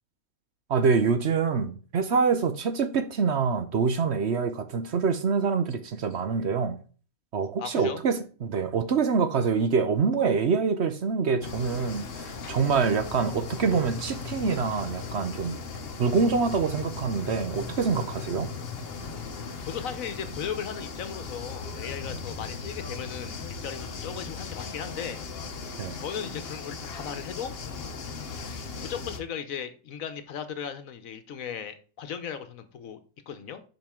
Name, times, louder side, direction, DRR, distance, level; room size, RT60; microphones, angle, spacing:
voice 1, 0.7-6.8 7.3-15.6 16.0-18.5 25.8-26.0, right 5 dB, 55° right, 1.0 m, -25 dB
voice 2, 7.6-8.0 19.7-25.2 26.0-27.5 28.8-33.6, left 8 dB, 75° left, 1.3 m, -37 dB
sound 1, 11.4-29.2, left 4 dB, 50° left, 1.0 m, -37 dB
7.4 x 5.3 x 3.7 m
omnidirectional pair, 1.5 m